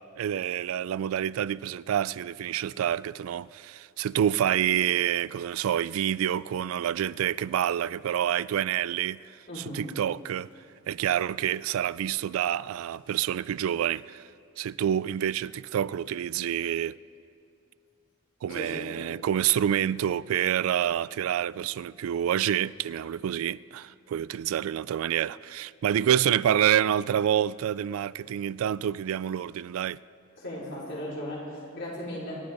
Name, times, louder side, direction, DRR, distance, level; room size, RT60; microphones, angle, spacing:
voice 1, 0.0-9.4 9.7-10.5 10.9-14.2 14.6-17.0 18.4-30.0, right 10 dB, 75° right, 0.3 m, -27 dB
voice 2, 9.5-9.8 18.5-18.9 30.4-32.3, left 1 dB, 60° left, 4.9 m, -37 dB
26.5 x 12.5 x 3.9 m
head